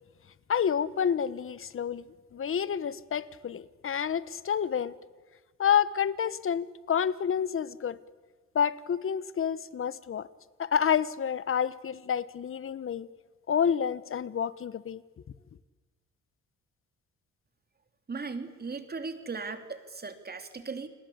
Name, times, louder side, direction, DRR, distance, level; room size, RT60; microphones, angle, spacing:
voice 1, 0.5-2.0 2.3-5.0 5.6-8.0 8.5-10.3 10.6-13.1 13.5-15.0, left 8 dB, 45° left, 17 dB, 1.2 m, -29 dB
voice 2, 18.1-20.9, right 4 dB, 30° right, 8 dB, 3.0 m, -37 dB
29.5 x 21.5 x 8.7 m, 1.3 s
cardioid pair, 90°, 30 cm